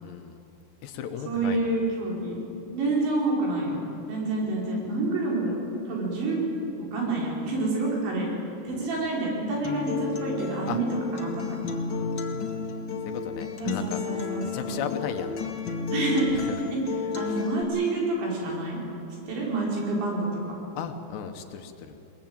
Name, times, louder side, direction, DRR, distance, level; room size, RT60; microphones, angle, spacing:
voice 1, 0.0-0.4 0.8-1.7 10.7-10.8 11.9-12.6 13.0-15.7 16.3-16.5 17.3-17.4 20.8-22.0, left 8 dB, 75° left, 7 dB, 3.0 m, -36 dB
voice 2, 1.3-2.4 2.7-6.4 6.9-8.3 8.7-10.9 11.1-11.6 13.6-14.8 15.9-16.4 16.7-16.8 17.2-18.8 19.3-20.3, right 2 dB, 75° right, -2 dB, 7.2 m, -28 dB
Acoustic guitar, 9.6-17.6, left 5 dB, 50° left, 1.5 m, -32 dB
21.5 x 21.0 x 8.9 m, 2.9 s
omnidirectional pair, 5.2 m